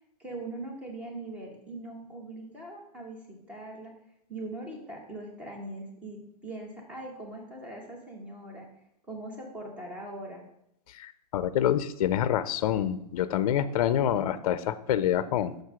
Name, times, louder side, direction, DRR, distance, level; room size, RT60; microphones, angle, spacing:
voice 1, 0.2-3.9 4.3-8.6 9.0-10.4, right 2 dB, 5° right, 0 dB, 0.9 m, -41 dB
voice 2, 10.9-15.6, left 10 dB, 60° left, 14 dB, 0.4 m, -27 dB
6.4 x 4.6 x 4.8 m, 0.79 s
supercardioid pair, 170°, 20 cm